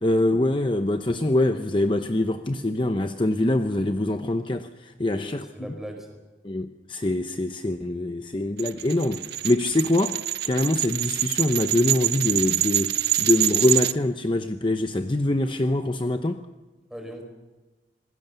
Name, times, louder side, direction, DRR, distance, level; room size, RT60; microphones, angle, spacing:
voice 1, 0.0-5.4 6.4-10.2 10.4-16.4, left 1 dB, 30° left, 0.8 m, -24 dB
voice 2, 5.0-6.2 16.9-17.2, equal, ahead, 4.6 m, -39 dB
sound 1, 8.6-13.9, right 14 dB, 60° right, 0.7 m, -25 dB
27.0 x 20.5 x 6.9 m
head